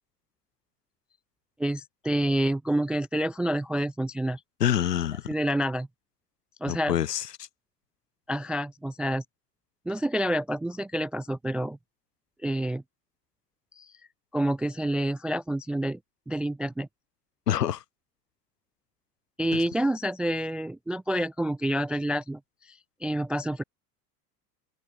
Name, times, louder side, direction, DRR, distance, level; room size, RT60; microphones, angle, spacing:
voice 1, 1.6-4.4 5.3-5.9 6.6-6.9 8.3-9.2 9.9-11.8 12.4-12.8 13.8-13.9 14.3-16.0 16.3-16.9 19.4-22.4 22.7-23.6, right 1 dB, ahead, 0.4 m, -28 dB
voice 2, 4.6-5.3 6.7-7.5 17.5-17.8 19.5-19.6, left 10 dB, 70° left, 2.7 m, -27 dB
open air
figure-of-eight pair, 80°, 50 cm